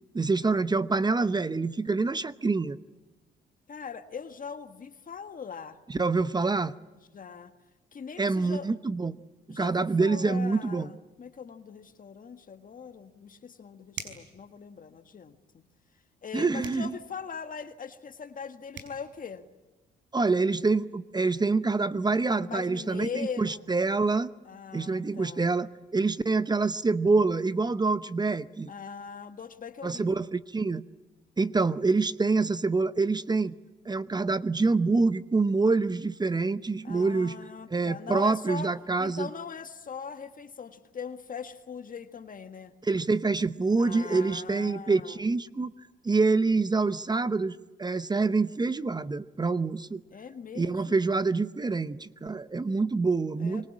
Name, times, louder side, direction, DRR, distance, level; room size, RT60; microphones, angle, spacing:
voice 1, 0.1-2.8 5.9-6.7 8.2-9.2 9.5-10.9 16.3-16.9 20.1-24.3 24.7-28.7 29.8-30.8 31.4-33.5 33.8-37.3 37.7-39.3 42.8-45.7 46.0-50.0 50.6-53.7, right 3 dB, 20° right, 15 dB, 0.8 m, -26 dB
voice 2, 3.7-5.8 7.1-7.5 7.9-8.7 9.5-15.7 16.2-19.5 22.3-23.6 24.5-25.5 28.7-30.3 36.8-38.7 39.0-42.7 43.8-45.2 50.1-51.1 53.4-53.7, left 6 dB, 45° left, 9 dB, 1.7 m, -41 dB
sound 1, 13.9-14.3 16.6-16.9 18.4-18.5 18.7-19.0, right 6 dB, 70° right, 5.4 m, -40 dB
25.5 x 23.5 x 8.6 m, 1.2 s
cardioid pair, 90°, 20 cm